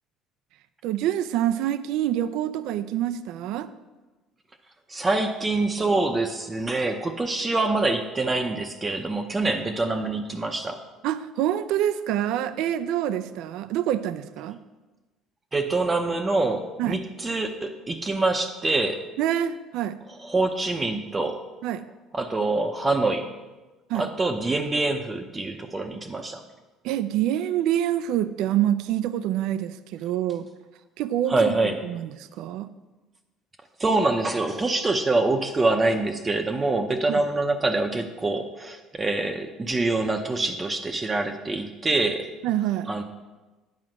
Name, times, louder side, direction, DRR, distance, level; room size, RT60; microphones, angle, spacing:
voice 1, 0.8-3.7 11.0-14.6 16.8-17.0 19.2-20.0 21.6-21.8 23.9-24.1 26.8-30.5 31.0-32.7 37.1-37.2 42.4-42.9, right 11 dB, 75° right, 13 dB, 0.4 m, -26 dB
voice 2, 4.9-10.8 15.5-19.0 20.2-21.4 22.1-23.3 23.9-26.4 31.3-31.8 33.8-42.3 42.9-43.0, right 2 dB, 20° right, 4 dB, 0.7 m, -25 dB
9.4 x 4.9 x 7.6 m, 1.2 s
cardioid pair, 120°, 0 cm